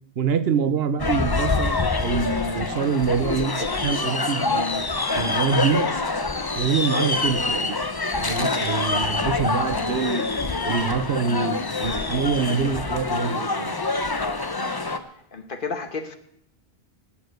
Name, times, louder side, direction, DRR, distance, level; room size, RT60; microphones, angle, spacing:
voice 1, 0.2-4.8 5.1-5.9 6.6-7.8 8.2-10.3 10.6-13.7, right 6 dB, 70° right, 1.1 m, -25 dB
sound 1, 1.0-15.0, left 3 dB, 25° left, 0.7 m, -25 dB
voice 2, 8.2-8.5 14.2-14.5 15.3-16.2, left 4 dB, 55° left, 1.3 m, -32 dB
18.5 x 7.2 x 7.9 m
omnidirectional pair, 1.1 m